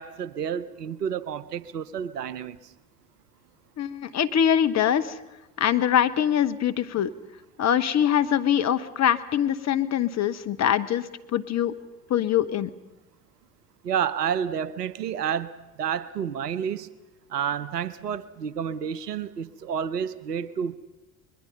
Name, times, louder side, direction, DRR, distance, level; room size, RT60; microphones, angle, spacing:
voice 1, 0.0-2.7 13.8-16.9 17.3-20.7, right 8 dB, 85° right, 0.8 m, -30 dB
voice 2, 3.8-5.2 5.6-7.1 7.6-11.7 12.1-12.7, left 9 dB, 35° left, 1.1 m, -23 dB
25.0 x 21.5 x 5.4 m
figure-of-eight pair, 65°, 47 cm